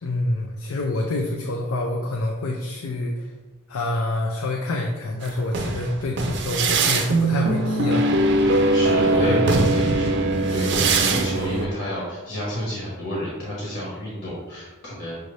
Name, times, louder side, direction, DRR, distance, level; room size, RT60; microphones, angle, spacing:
voice 1, 0.0-3.3 3.7-8.1 9.1-9.4, left 2 dB, 85° left, 1 dB, 0.5 m, -27 dB
sound 1, 5.2-11.7, right 2 dB, 55° right, 0.4 m, -21 dB
voice 2, 8.4-10.2 10.5-15.2, left 1 dB, 65° left, -6 dB, 1.1 m, -30 dB
6.3 x 2.7 x 3.2 m, 1.3 s
head